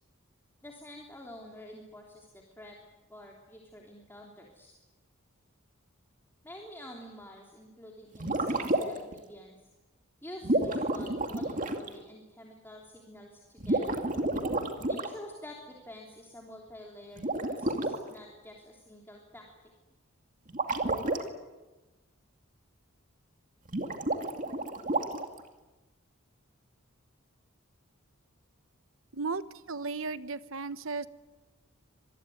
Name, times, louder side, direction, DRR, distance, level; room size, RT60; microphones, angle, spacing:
voice 1, 0.6-2.3 2.6-2.8 3.1-4.7 6.4-9.7 10.2-14.0 14.9-19.4, left 1 dB, 10° left, 0 dB, 3.2 m, -48 dB
sound 1, 8.1-9.1 10.4-11.9 13.6-15.1 17.2-18.0 20.5-21.2 23.7-25.4, right 2 dB, 40° right, 2.3 m, -30 dB
voice 2, 29.1-29.4 29.7-31.1, right 4 dB, 65° right, 13 dB, 1.1 m, -34 dB
26.0 x 20.5 x 9.5 m, 1.1 s
head